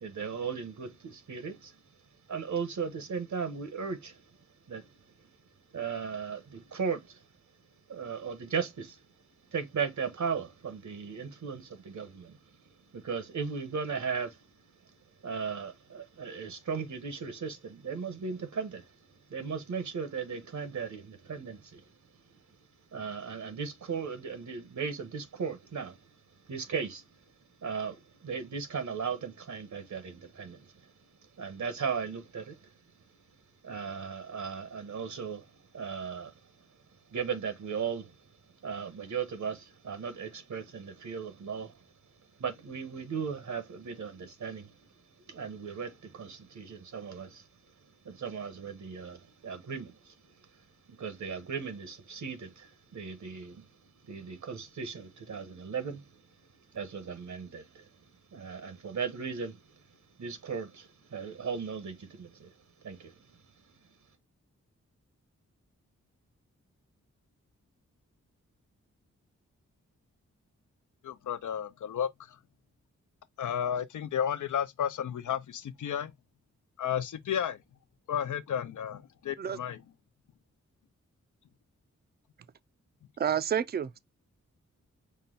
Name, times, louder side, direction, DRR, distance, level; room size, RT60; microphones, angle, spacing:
voice 1, 0.0-1.8 2.3-4.4 4.7-5.3 5.7-7.3 7.9-9.0 9.5-14.5 14.8-14.9 15.2-22.0 22.9-26.1 26.4-27.3 27.6-30.9 31.4-32.7 33.6-36.5 37.1-38.3 38.6-41.9 42.4-44.9 45.2-47.5 47.8-53.7 54.0-56.1 56.7-58.0 58.3-59.8 60.2-62.5 62.8-63.4, right 6 dB, 75° right, 1.2 m, -37 dB
voice 2, 71.0-72.1 73.4-76.1 76.8-77.6 78.1-79.8, left 9 dB, 85° left, 0.6 m, -32 dB
voice 3, 83.2-84.0, right 9 dB, 35° right, 0.4 m, -29 dB
5.5 x 2.2 x 3.8 m
cardioid pair, 70°, 30 cm